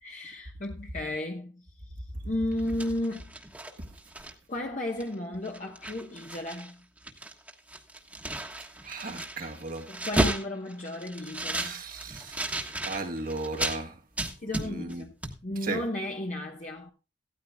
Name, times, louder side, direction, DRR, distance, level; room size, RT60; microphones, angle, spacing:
voice 1, 0.0-1.6 2.2-3.2 4.5-6.8 9.9-11.7 14.4-15.2 15.4-16.9, left 1 dB, 45° left, 1.1 m, -34 dB
sound 1, 2.5-4.6 5.0-5.1 5.4-6.7 7.0-13.8 14.2-15.0 15.2-15.4, right 1 dB, 10° right, 1.4 m, -33 dB
voice 2, 8.8-9.9 11.5-14.0 14.6-15.0 15.6-15.8, right 3 dB, 50° right, 1.4 m, -36 dB
16.5 x 13.0 x 2.3 m
head